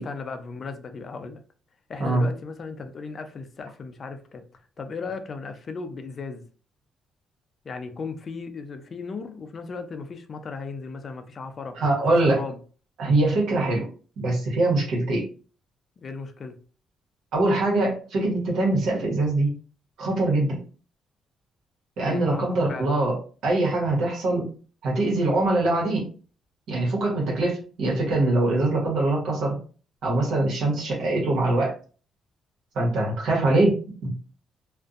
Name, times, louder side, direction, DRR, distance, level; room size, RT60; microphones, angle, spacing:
voice 1, 0.0-1.4 1.9-4.4 4.8-6.4 7.6-11.8 12.1-12.6 16.0-16.6 22.0-22.9, left 4 dB, 45° left, 0.4 m, -36 dB
voice 2, 11.8-12.4 13.0-13.9 14.2-15.3 17.3-19.5 20.0-20.6 22.0-23.2 23.4-24.5 24.8-26.1 26.7-29.6 30.0-31.7 32.7-34.1, right 2 dB, 75° right, 1.1 m, -23 dB
2.5 x 2.1 x 2.4 m
cardioid pair, 90°, 0 cm